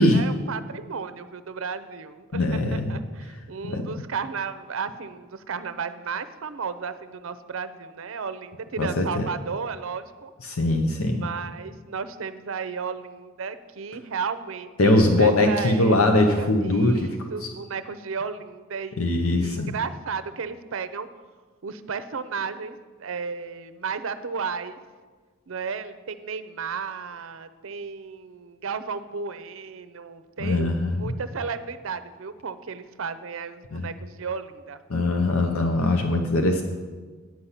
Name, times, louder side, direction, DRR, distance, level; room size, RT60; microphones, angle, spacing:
voice 1, 0.0-10.3 11.0-16.0 16.4-21.1 21.6-24.8 25.5-34.8, right 5 dB, 65° right, 12 dB, 0.6 m, -34 dB
voice 2, 2.3-2.9 3.6-3.9 8.8-9.3 10.4-11.3 14.8-17.0 19.0-19.7 30.4-31.1 33.7-33.9 34.9-36.6, left 2 dB, 80° left, 4 dB, 0.8 m, -21 dB
9.3 x 5.7 x 8.2 m, 1.4 s
head